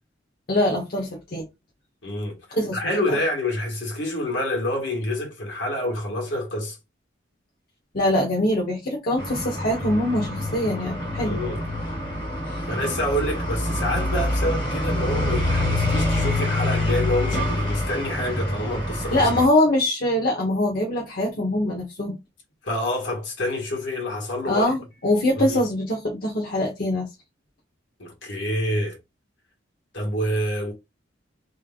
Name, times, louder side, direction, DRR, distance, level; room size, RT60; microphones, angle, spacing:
voice 1, 0.5-1.4 2.5-2.8 3.1-3.2 7.9-11.4 12.5-12.6 19.1-22.2 24.5-27.1, left 1 dB, 50° left, 1.0 m, -23 dB
voice 2, 2.0-2.4 2.7-6.8 11.2-11.6 12.7-19.2 22.6-24.7 25.4-25.6 28.0-29.0 29.9-30.7, left 1 dB, 70° left, 1.7 m, -27 dB
sound 1, 9.2-19.5, left 1 dB, 25° left, 1.5 m, -26 dB
3.6 x 3.3 x 2.4 m
head